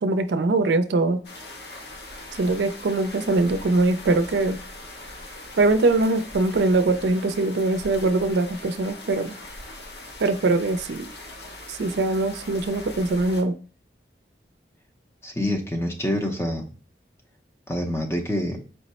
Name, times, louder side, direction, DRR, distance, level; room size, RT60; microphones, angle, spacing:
voice 1, 0.0-1.2 2.4-4.6 5.6-9.3 10.2-11.1 11.7-13.6, right 2 dB, 75° right, 0.4 m, -22 dB
sound 1, 1.2-13.4, left 1 dB, 70° left, 0.8 m, -41 dB
voice 2, 15.2-16.7 17.7-18.6, left 1 dB, 15° left, 0.6 m, -26 dB
4.5 x 2.0 x 4.1 m
head